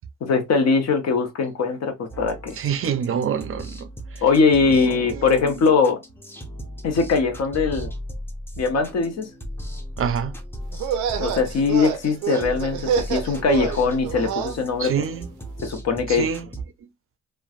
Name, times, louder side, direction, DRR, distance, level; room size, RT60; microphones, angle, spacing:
voice 1, 0.2-2.6 4.2-6.0 6.8-7.9 8.6-9.3 11.2-14.9 15.6-16.3, left 4 dB, 60° left, 0.9 m, -21 dB
sound 1, 2.1-16.6, equal, 5° left, 0.6 m, -37 dB
voice 2, 2.6-4.2 4.9-5.4 10.0-10.3 14.8-15.3 16.1-16.5 16.8-16.9, right 7 dB, 45° right, 0.5 m, -27 dB
sound 2, 10.7-14.6, right 8 dB, 90° right, 0.6 m, -27 dB
3.2 x 2.2 x 2.4 m
cardioid pair, 90°, 30 cm